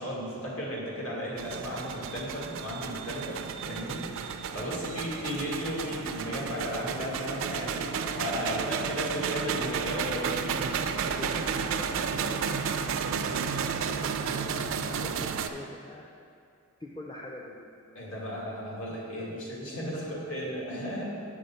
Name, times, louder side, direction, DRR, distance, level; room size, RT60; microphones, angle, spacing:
voice 1, 0.0-10.6 18.0-21.1, equal, 70° left, -4 dB, 1.8 m, -35 dB
sound 1, 1.4-15.5, right 6 dB, 65° right, 0.4 m, -32 dB
voice 2, 8.5-9.1 10.9-16.1 16.8-18.1 18.9-19.5 19.9-20.2, left 1 dB, 20° left, -2 dB, 0.5 m, -45 dB
6.5 x 4.8 x 5.6 m, 2.4 s
head